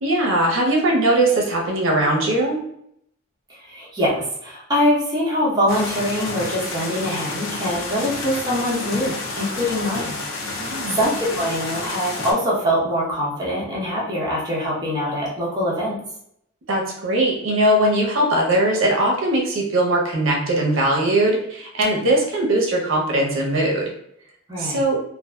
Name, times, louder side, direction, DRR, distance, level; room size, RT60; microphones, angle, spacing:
voice 1, 0.0-2.6 10.6-11.0 16.7-23.9 24.6-25.0, right 1 dB, 65° right, -1 dB, 0.7 m, -20 dB
voice 2, 3.5-10.2 10.9-16.0 24.5-24.8, equal, 20° right, -6 dB, 0.7 m, -23 dB
sound 1, 5.7-12.3, left 3 dB, 65° left, 0.5 m, -30 dB
2.6 x 2.4 x 2.2 m, 0.73 s
head